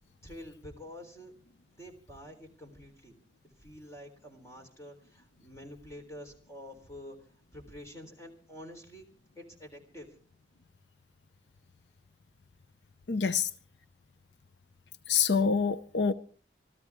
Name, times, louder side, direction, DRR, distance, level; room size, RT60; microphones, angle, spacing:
voice 1, 0.2-1.3 1.8-3.2 3.6-7.2 7.5-9.1 9.4-10.1, equal, 15° left, 3.6 m, -48 dB
voice 2, 13.1-13.5 15.1-16.1, left 5 dB, 80° left, 0.7 m, -26 dB
26.5 x 13.5 x 3.6 m
head